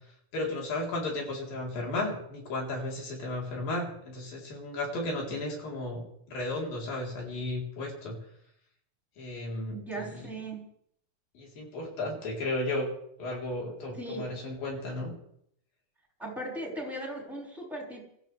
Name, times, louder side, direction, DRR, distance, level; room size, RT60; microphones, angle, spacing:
voice 1, 0.3-6.0 6.3-8.2 9.2-9.8 10.1-10.2 11.4-12.9 13.2-15.1, left 2 dB, 80° left, -1 dB, 5.6 m, -34 dB
voice 2, 9.7-10.6 13.9-14.3 16.2-18.1, right 1 dB, ahead, -2 dB, 4.9 m, -38 dB
28.0 x 14.0 x 3.4 m, 0.71 s
omnidirectional pair, 4.0 m